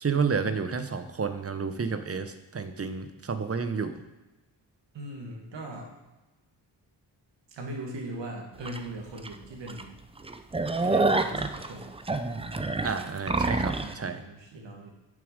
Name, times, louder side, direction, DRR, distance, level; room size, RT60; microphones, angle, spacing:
voice 1, 0.0-2.3 2.5-3.9 12.8-14.2, right 5 dB, 35° right, 9 dB, 0.9 m, -30 dB
voice 2, 4.9-5.9 7.5-9.9 10.8-11.9 13.6-14.9, right 1 dB, 80° right, 0 dB, 2.0 m, -40 dB
sound 1, 8.7-8.8 9.2-9.3 9.7-9.8 10.2-13.9, right 3 dB, 15° right, 0.6 m, -27 dB
7.0 x 6.8 x 5.2 m, 1.1 s
cardioid pair, 60°, 43 cm